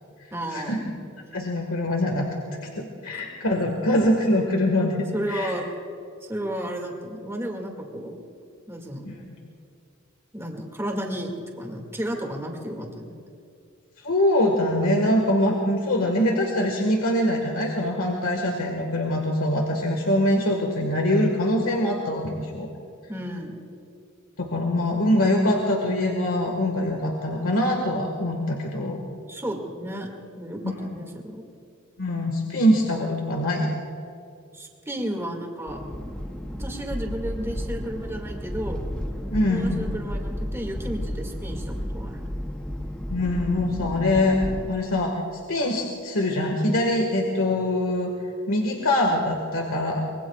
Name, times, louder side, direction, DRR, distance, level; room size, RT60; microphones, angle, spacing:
voice 1, 0.3-0.9 3.1-3.2 3.6-3.7 5.1-5.6 6.3-8.2 8.7-9.1 10.3-13.1 23.1-23.6 29.3-30.1 30.4-31.5 34.5-38.8 39.5-42.2, equal, 10° right, 1 dB, 2.1 m, -33 dB
voice 2, 1.3-2.3 2.8-5.5 9.0-9.1 14.0-22.7 24.4-29.0 30.6-30.7 32.0-33.7 39.3-39.8 43.1-44.4 44.7-45.1 45.5-48.1 48.5-50.0, left 1 dB, 70° left, 1 dB, 1.7 m, -23 dB
sound 1, 35.7-44.7, equal, 5° left, 0.8 m, -32 dB
25.0 x 22.0 x 2.4 m, 2.5 s
head